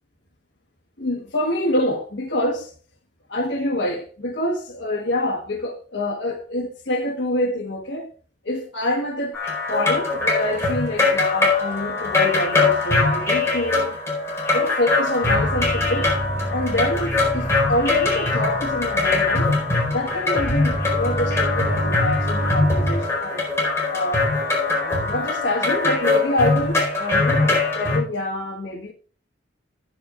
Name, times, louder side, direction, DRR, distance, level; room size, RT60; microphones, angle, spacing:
voice 1, 1.0-2.7 3.3-8.1 8.4-9.4 9.7-14.0 14.5-16.2 16.5-19.5 19.9-23.4 23.9-24.3 24.7-28.9, left 1 dB, 80° left, 1.3 m, -26 dB
Ghatam-Morsing-Improvisation, 9.3-28.0, left 3 dB, 15° left, 4.4 m, -22 dB
sound 1, 15.2-23.0, right 1 dB, 10° right, 5.0 m, -28 dB
15.0 x 10.5 x 2.4 m
head